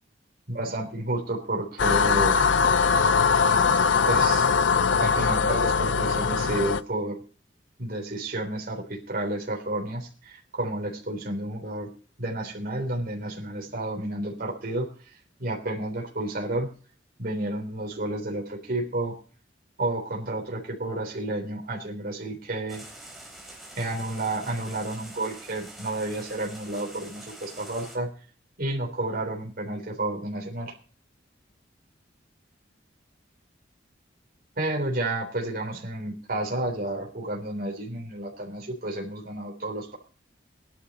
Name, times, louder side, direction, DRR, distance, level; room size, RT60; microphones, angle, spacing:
voice 1, 0.5-2.4 4.1-4.5 4.9-7.2 7.8-11.9 12.2-14.9 15.4-16.7 17.2-19.1 19.8-22.8 23.8-28.1 28.6-30.7 34.6-40.0, right 1 dB, 55° right, 0 dB, 3.6 m, -31 dB
sound 1, 1.8-6.8, left 5 dB, 85° left, 0.6 m, -21 dB
sound 2, 22.7-28.0, right 1 dB, ahead, 4.0 m, -45 dB
18.0 x 11.5 x 4.2 m, 0.39 s
head